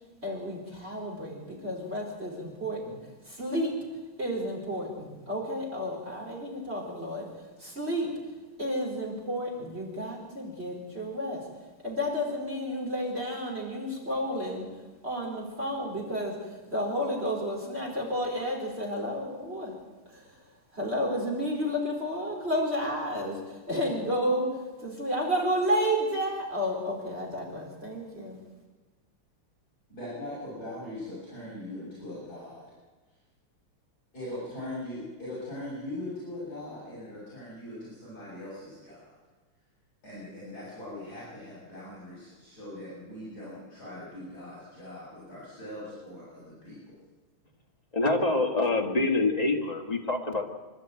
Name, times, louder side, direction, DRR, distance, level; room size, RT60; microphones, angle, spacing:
voice 1, 0.2-3.0 3.2-3.8 4.2-8.2 8.6-11.5 11.8-14.7 15.0-19.8 20.1-20.4 20.7-28.4, equal, 25° right, -2 dB, 4.6 m, -31 dB
voice 2, 29.9-32.7 34.1-39.0 40.0-46.9, left 1 dB, 45° left, -8 dB, 7.3 m, -40 dB
voice 3, 47.9-50.4, left 2 dB, 20° left, 1 dB, 2.0 m, -26 dB
26.5 x 12.0 x 9.1 m, 1.2 s
omnidirectional pair, 2.4 m